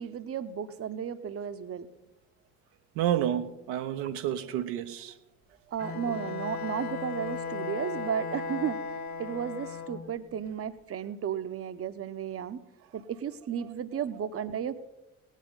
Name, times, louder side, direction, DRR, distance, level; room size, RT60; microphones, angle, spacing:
voice 1, 0.0-1.9 5.7-12.6 12.9-14.8, right 8 dB, 35° right, 0.9 m, -34 dB
voice 2, 3.0-5.1 6.1-6.2, right 11 dB, 65° right, 0.7 m, -30 dB
Bowed string instrument, 5.8-10.1, left 5 dB, 45° left, 2.0 m, -36 dB
18.0 x 9.1 x 5.4 m
figure-of-eight pair, 40°, 40 cm